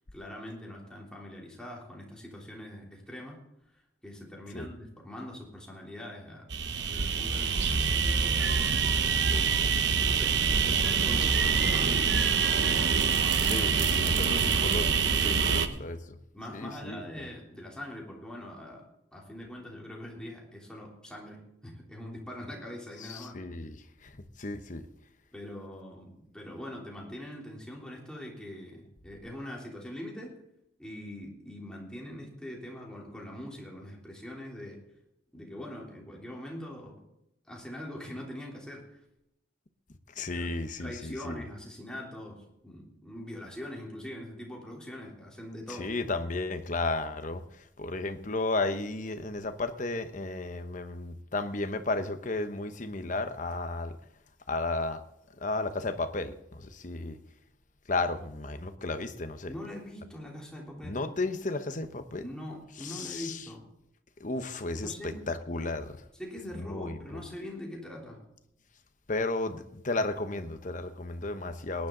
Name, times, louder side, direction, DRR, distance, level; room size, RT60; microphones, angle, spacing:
voice 1, 0.1-3.4 3.7-3.8 4.0-8.6 9.3-9.7 10.0-12.2 15.4-15.8 16.3-23.4 25.3-30.4 30.8-34.8 35.3-37.0 37.5-39.0 40.3-40.4 40.8-45.9 59.5-61.0 62.2-63.6 64.8-65.3 66.1-68.3, left 1 dB, 5° left, 3.3 m, -43 dB
sound 1, 6.5-15.7, right 6 dB, 65° right, 0.9 m, -25 dB
voice 2, 13.4-16.2 16.5-17.0 23.0-23.8 24.0-24.9 40.1-41.4 45.7-54.0 54.5-55.0 55.4-57.2 57.9-59.6 60.8-62.2 62.8-63.5 64.2-66.0 66.6-67.2 69.1-71.9, left 2 dB, 45° left, 1.0 m, -34 dB
18.5 x 10.5 x 3.9 m
head